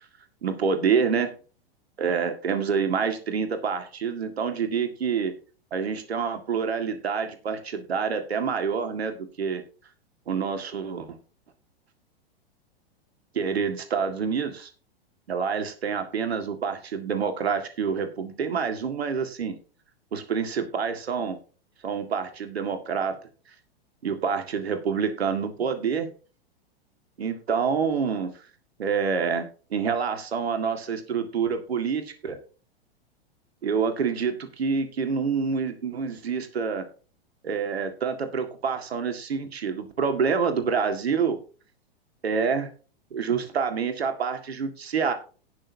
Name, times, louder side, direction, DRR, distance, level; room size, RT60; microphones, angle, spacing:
voice 1, 0.4-1.3 2.0-5.3 5.7-9.6 10.3-11.2 13.3-14.7 15.3-19.6 20.1-21.4 21.8-23.2 24.0-26.1 27.2-28.3 28.8-32.4 33.6-36.9 37.4-41.4 42.2-42.7 43.1-45.1, right 6 dB, 80° right, 7 dB, 2.0 m, -27 dB
18.0 x 6.4 x 2.8 m, 0.37 s
hypercardioid pair, 105°, 31 cm